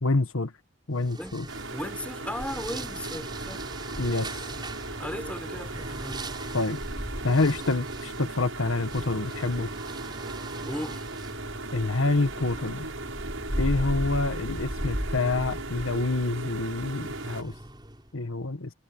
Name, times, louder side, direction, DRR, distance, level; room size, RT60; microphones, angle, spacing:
voice 1, 0.0-0.5 0.9-1.4 4.0-4.4 6.5-6.8 7.2-9.7 11.7-12.9 13.6-17.5 18.1-18.7, left 2 dB, 85° left, 1.5 m, -27 dB
sound 1, 1.0-18.1, right 1 dB, 20° right, 7.7 m, -37 dB
sound 2, 1.5-17.4, right 3 dB, 85° right, 7.2 m, -38 dB
voice 2, 1.7-3.6 5.0-6.3 10.7-11.1, left 1 dB, 5° left, 4.5 m, -36 dB
head